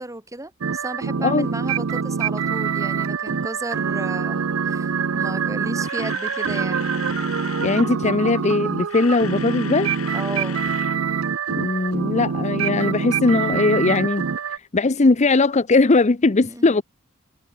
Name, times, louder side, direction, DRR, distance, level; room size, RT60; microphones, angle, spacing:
voice 1, 0.0-6.9 10.1-10.7 16.5-16.7, right 2 dB, 15° right, 2.9 m, -34 dB
sound 1, 0.6-14.6, right 6 dB, 70° right, 0.6 m, -25 dB
Camera, 5.8-7.9 8.7-11.0 11.2-11.4 11.9-12.0, left 8 dB, 80° left, 1.9 m, -37 dB
voice 2, 7.6-9.9 11.6-14.3 14.7-16.8, left 3 dB, 35° left, 0.7 m, -19 dB
head